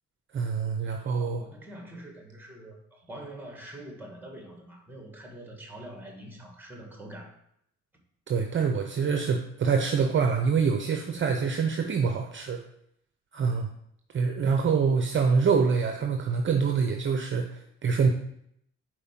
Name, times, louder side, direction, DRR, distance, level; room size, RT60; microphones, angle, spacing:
voice 1, 0.3-1.4 8.3-12.6 13.3-13.7 14.1-18.1, right 5 dB, 40° right, 4 dB, 0.7 m, -25 dB
voice 2, 1.1-7.4, right 1 dB, 5° right, 2 dB, 1.9 m, -44 dB
5.0 x 4.6 x 5.8 m, 0.73 s
cardioid pair, 90°, 30 cm